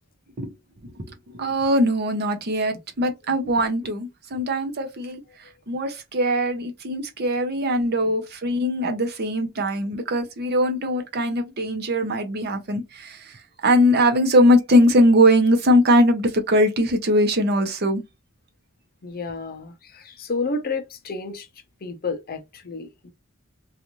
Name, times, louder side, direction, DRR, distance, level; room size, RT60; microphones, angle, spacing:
voice 1, 0.8-5.2 5.7-18.0, equal, 50° right, 0.7 m, -21 dB
voice 2, 19.0-21.5 21.8-23.1, left 3 dB, 45° left, 0.6 m, -31 dB
2.5 x 2.5 x 2.9 m
head